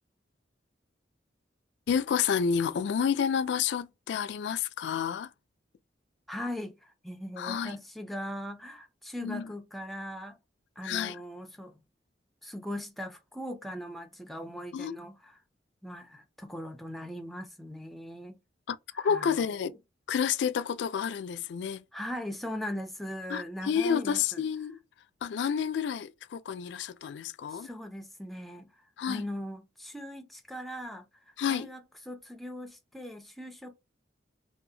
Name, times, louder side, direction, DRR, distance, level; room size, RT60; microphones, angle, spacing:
voice 1, 1.9-5.3 7.4-7.8 9.2-9.5 10.8-11.2 14.7-15.0 18.7-19.8 20.1-21.8 23.3-24.8 25.2-27.7 29.0-29.2 31.4-31.7, left 7 dB, 70° left, 0.3 m, -30 dB
voice 2, 6.3-10.4 10.8-11.8 12.4-15.3 15.8-18.4 18.9-19.5 21.9-24.4 26.7-26.9 27.5-28.7 29.0-31.8 32.1-33.7, equal, ahead, 0.4 m, -40 dB
2.7 x 2.3 x 2.6 m
head